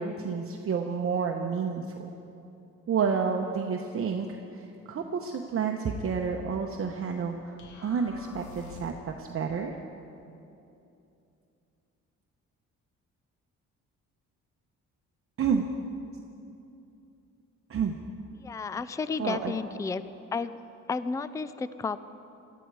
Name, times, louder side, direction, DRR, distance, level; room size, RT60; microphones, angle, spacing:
voice 1, 0.0-1.8 2.9-7.6 7.8-9.7 15.4-15.6 17.7-18.0 19.2-19.6, right 6 dB, 45° right, 2 dB, 0.9 m, -30 dB
sound 1, 7.6-9.2, left 5 dB, 75° left, 1.3 m, -47 dB
voice 2, 18.4-20.0 20.3-20.6 20.9-22.0, left 4 dB, 10° left, 14 dB, 0.4 m, -32 dB
17.5 x 12.5 x 4.8 m, 2.7 s
cardioid pair, 90°, 30 cm